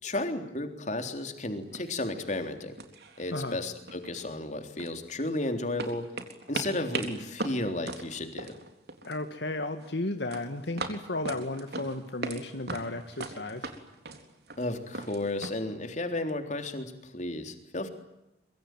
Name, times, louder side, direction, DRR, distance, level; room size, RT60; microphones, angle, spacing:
voice 1, 0.0-2.7 3.2-6.1 6.5-8.6 14.6-17.9, left 2 dB, 45° left, 6 dB, 3.7 m, -33 dB
sound 1, 1.2-1.3 1.7-2.0 2.3-2.5 2.8-3.6 3.9-5.4 5.8-9.3 9.5-9.9 10.3-12.4 12.7-15.5, right 3 dB, 65° right, 3.9 m, -38 dB
voice 2, 9.0-13.7, left 2 dB, 75° left, 7 dB, 2.0 m, -34 dB
25.0 x 24.0 x 9.3 m, 0.90 s
head